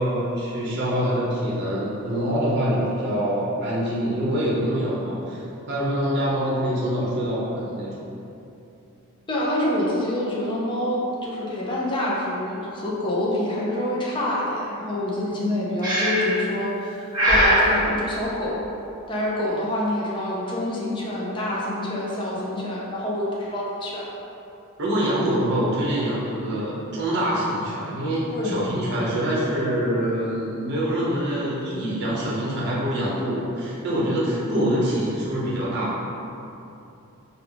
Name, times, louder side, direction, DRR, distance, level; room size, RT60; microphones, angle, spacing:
voice 1, 0.0-5.4 5.7-8.0 24.8-36.1, equal, 50° right, -6 dB, 0.7 m, -25 dB
voice 2, 9.3-18.8 19.1-24.0 28.3-28.6, left 1 dB, 20° left, -5 dB, 0.5 m, -26 dB
Breathing, 15.8-16.4 17.1-17.7, equal, 20° right, 1.1 m, -19 dB
3.3 x 2.4 x 3.5 m, 2.7 s
head